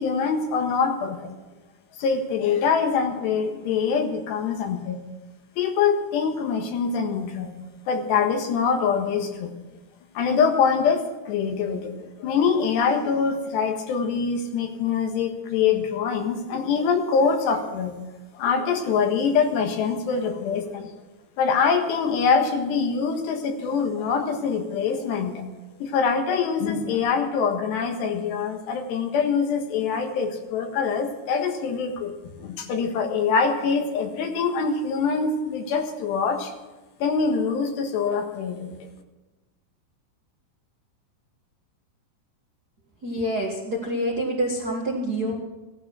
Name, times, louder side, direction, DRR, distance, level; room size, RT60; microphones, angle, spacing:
voice 1, 0.0-1.4 2.0-5.0 5.6-7.5 7.9-9.5 10.2-17.9 18.4-20.9 21.4-25.4 25.8-32.1 32.4-36.5 37.0-38.9, left 5 dB, 80° left, 4 dB, 3.6 m, -24 dB
voice 2, 43.0-45.3, right 1 dB, 60° right, -2 dB, 0.9 m, -27 dB
16.5 x 12.0 x 6.3 m, 1.1 s
omnidirectional pair, 4.9 m